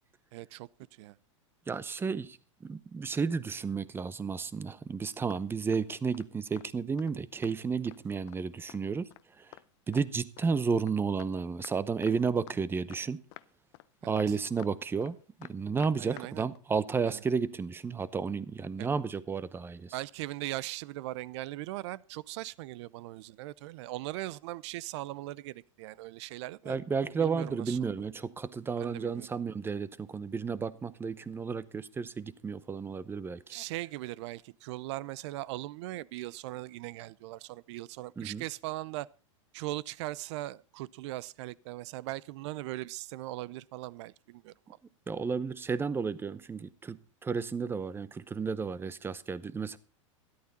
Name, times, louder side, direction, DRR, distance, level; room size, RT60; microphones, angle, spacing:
voice 1, 0.3-0.7 1.0-1.1 14.0-14.1 16.0-16.4 17.0-17.2 18.8-18.9 19.9-26.8 27.2-28.1 28.8-29.3 33.5-39.1 39.5-44.5, right 17 dB, 60° right, 0.6 m, -39 dB
voice 2, 1.7-9.1 9.4-9.6 9.9-13.2 14.0-19.9 26.7-33.6 38.2-38.4 45.1-49.8, right 5 dB, 15° right, 0.7 m, -32 dB
sound 1, 5.3-5.4 5.7-5.8 6.1-6.3 6.6-6.7 7.0-7.1 7.4-8.0 8.3-8.4 8.7-8.8 9.1-9.2 9.5-9.6 9.9-10.9 11.2-11.3 11.6-11.8 12.0-12.6 12.9-13.0 13.3-13.5 13.7-13.9 14.2-14.7 15.0-15.1 15.4-16.3 16.6-16.7, left 19 dB, 55° left, 0.7 m, -50 dB
13.0 x 11.5 x 4.2 m
hypercardioid pair, 120°, 17 cm